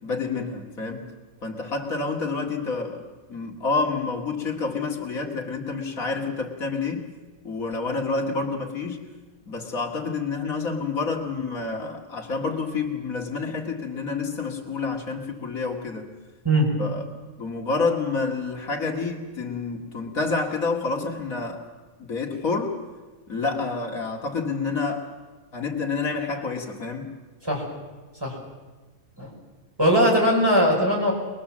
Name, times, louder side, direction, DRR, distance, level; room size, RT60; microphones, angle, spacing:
voice 1, 0.0-1.1 1.4-7.1 7.4-9.1 9.5-16.1 16.8-17.0 17.4-21.6 22.0-22.8 23.3-25.1 25.5-27.1, left 4 dB, 90° left, 1 dB, 2.9 m, -28 dB
voice 2, 29.8-31.1, equal, 15° right, -2 dB, 5.9 m, -20 dB
22.5 x 22.0 x 7.6 m, 1.3 s
omnidirectional pair, 1.4 m